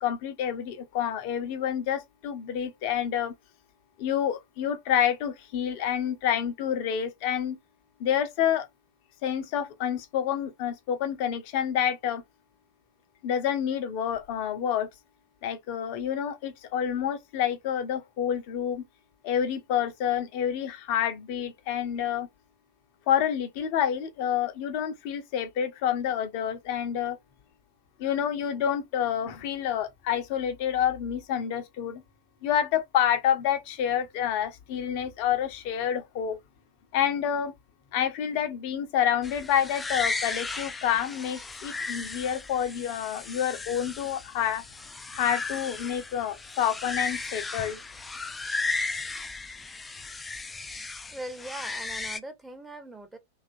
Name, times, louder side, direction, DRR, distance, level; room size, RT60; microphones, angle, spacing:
voice 1, 0.0-3.3 4.0-7.6 8.0-8.7 9.2-12.2 13.2-14.9 15.4-18.8 19.2-22.3 23.1-27.2 28.0-32.0 32.4-36.4 36.9-37.5 37.9-44.6 45.1-47.8, left 9 dB, 45° left, 0.6 m, -28 dB
sound 1, 39.2-52.2, left 3 dB, 10° left, 0.3 m, -35 dB
voice 2, 51.1-53.2, right 1 dB, 5° right, 0.7 m, -40 dB
2.8 x 2.4 x 2.5 m
figure-of-eight pair, 90°, 0 cm